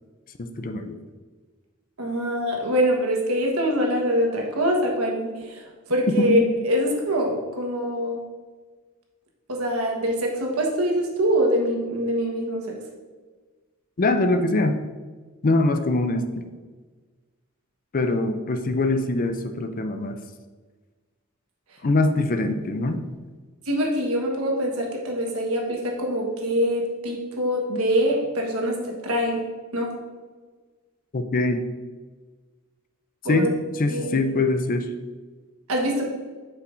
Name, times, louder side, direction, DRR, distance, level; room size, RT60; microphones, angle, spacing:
voice 1, 0.4-1.0 6.1-6.4 14.0-14.7 15.4-16.5 17.9-20.2 21.8-23.0 31.1-31.7 33.3-34.9, left 2 dB, 40° left, 7 dB, 0.5 m, -23 dB
voice 2, 2.0-5.6 5.9-6.4 6.6-8.2 9.5-12.6 23.7-29.4 29.7-29.9 33.2-33.5 33.9-34.1 35.7-36.1, equal, 80° right, 0 dB, 1.4 m, -24 dB
8.0 x 5.7 x 2.6 m, 1.4 s
head